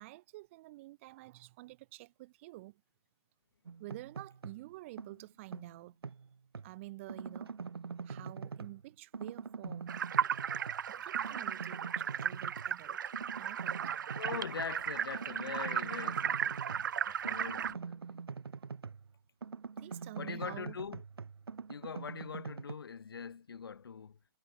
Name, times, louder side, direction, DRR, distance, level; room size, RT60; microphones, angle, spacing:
voice 1, 0.0-2.8 3.8-6.0 6.6-7.6 8.0-10.1 10.9-13.0 13.4-13.8 18.6-18.7 19.8-20.8, right 19 dB, 30° right, 4.7 m, -49 dB
sound 1, 3.7-4.7 5.0-6.7 7.1-8.8 9.1-10.9 11.1-12.7 13.1-14.8 15.1-19.1 19.4-22.7, right 5 dB, 65° right, 5.9 m, -44 dB
sound 2, 9.9-17.7, right 8 dB, 50° right, 1.9 m, -35 dB
voice 2, 14.1-18.2 20.2-21.0 21.7-24.2, left 6 dB, 60° left, 4.7 m, -43 dB
figure-of-eight pair, 145°, 14 cm